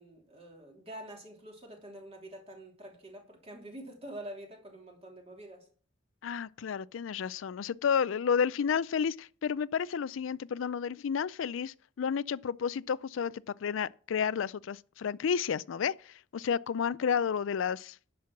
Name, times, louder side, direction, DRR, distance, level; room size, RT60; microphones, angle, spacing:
voice 1, 0.0-5.7, right 1 dB, 30° right, 3.0 m, -46 dB
voice 2, 6.2-18.0, left 7 dB, 80° left, 0.4 m, -31 dB
10.5 x 6.3 x 5.8 m
head